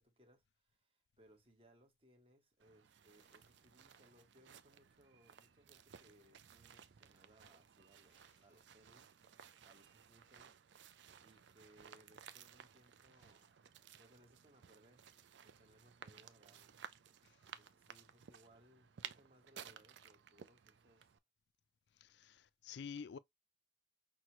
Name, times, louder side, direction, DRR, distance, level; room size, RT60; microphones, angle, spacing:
voice 1, 0.0-9.1 9.3-10.6 10.9-15.0 15.4-16.7 17.4-21.2, right 1 dB, 30° right, 1.1 m, -68 dB
sound 1, 2.6-21.2, right 8 dB, 70° right, 0.4 m, -58 dB
voice 2, 22.0-23.2, left 6 dB, 65° left, 0.3 m, -49 dB
5.9 x 2.2 x 3.0 m
head